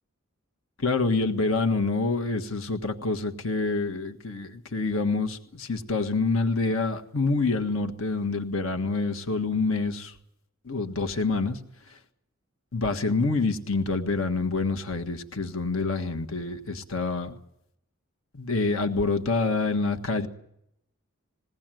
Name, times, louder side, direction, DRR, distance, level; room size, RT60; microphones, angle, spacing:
voice 1, 0.8-10.1 10.6-11.6 12.7-17.3 18.3-20.3, left 3 dB, 70° left, 7 dB, 1.5 m, -27 dB
21.0 x 17.5 x 9.1 m, 0.80 s
head